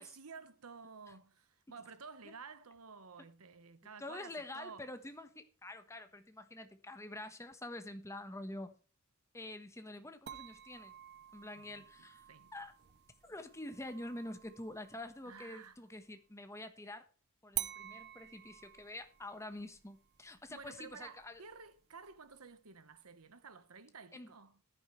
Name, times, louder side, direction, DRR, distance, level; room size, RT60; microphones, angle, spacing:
voice 1, 0.0-4.9 11.6-11.9 12.3-12.7 15.3-15.8 20.5-24.6, right 5 dB, 85° right, 1.2 m, -53 dB
voice 2, 4.0-8.7 9.3-10.9 11.3-12.2 12.5-12.7 13.2-17.0 17.4-21.4 24.1-24.3, left 1 dB, 15° left, 1.2 m, -47 dB
sound 1, 10.3-15.9 17.5-22.5, right 13 dB, 50° right, 0.7 m, -49 dB
15.0 x 10.0 x 3.2 m
head